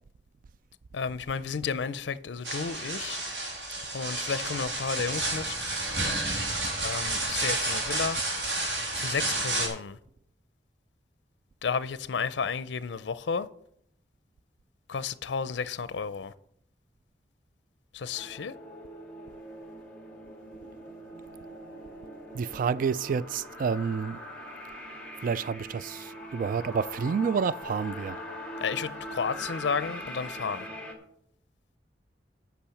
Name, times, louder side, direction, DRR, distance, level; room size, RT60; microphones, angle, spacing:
voice 1, 0.9-3.2 3.9-5.6 6.8-8.2 8.9-10.0 11.6-13.5 14.9-16.3 17.9-18.5 28.6-30.7, left 5 dB, 80° left, 0.5 m, -32 dB
sound 1, 2.4-9.7, right 2 dB, 75° right, 3.0 m, -31 dB
sound 2, 18.1-30.9, equal, 5° left, 2.1 m, -42 dB
voice 2, 22.3-24.2 25.2-28.2, right 6 dB, 50° right, 0.3 m, -29 dB
8.5 x 6.2 x 7.0 m
head